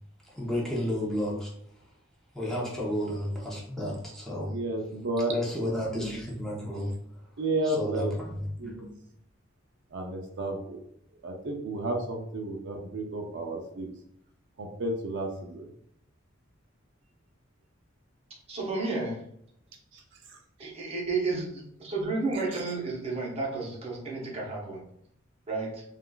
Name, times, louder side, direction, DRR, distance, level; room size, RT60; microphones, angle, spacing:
voice 1, 0.4-1.5 2.3-4.6 5.3-6.9 7.6-8.3 8.6-8.9, equal, ahead, -5 dB, 0.7 m, -32 dB
voice 2, 4.5-5.3 7.4-8.1 8.6-8.9 9.9-10.8 11.2-13.9 14.6-15.7 19.9-20.0 20.3-20.7, right 2 dB, 65° right, 2 dB, 0.4 m, -32 dB
voice 3, 18.5-19.2 20.6-24.8 25.5-25.8, right 3 dB, 30° right, -3 dB, 0.9 m, -32 dB
3.7 x 2.4 x 2.3 m, 0.73 s
head